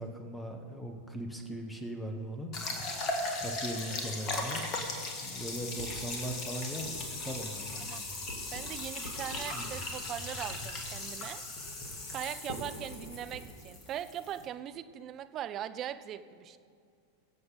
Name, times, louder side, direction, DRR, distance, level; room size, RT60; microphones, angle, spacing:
voice 1, 0.0-2.6 3.4-4.7 5.2-8.0 9.5-9.7, equal, 5° left, 4 dB, 1.4 m, -39 dB
sound 1, 2.5-14.4, left 2 dB, 35° left, 1.8 m, -38 dB
voice 2, 2.8-3.2 7.8-8.0 8.5-11.4 12.1-16.6, right 10 dB, 30° right, 10 dB, 0.6 m, -40 dB
sound 2, 5.3-13.4, equal, 55° left, 3.1 m, -47 dB
22.5 x 7.7 x 4.1 m, 2.2 s
figure-of-eight pair, 90°, 0 cm